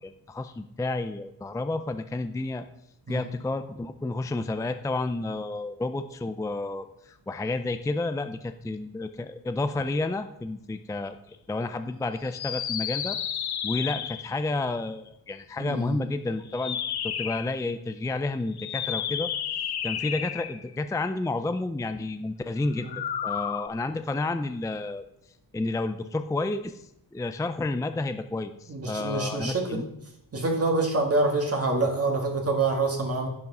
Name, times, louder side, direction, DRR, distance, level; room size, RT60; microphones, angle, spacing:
voice 1, 0.0-2.7 3.1-11.2 11.5-13.2 13.6-16.8 17.0-19.3 19.8-22.9 23.2-25.0 25.5-26.8 27.1-29.8, left 2 dB, 10° left, 9 dB, 0.4 m, -30 dB
sound 1, 12.3-14.4 16.5-17.5 18.5-20.7 22.8-23.7, left 9 dB, 85° left, 0.9 m, -32 dB
voice 2, 15.6-16.0 22.8-23.0 28.7-29.8 30.3-33.3, right 3 dB, 40° right, 1 dB, 1.9 m, -26 dB
10.5 x 9.6 x 5.4 m, 0.81 s
wide cardioid pair, 145°, 37 cm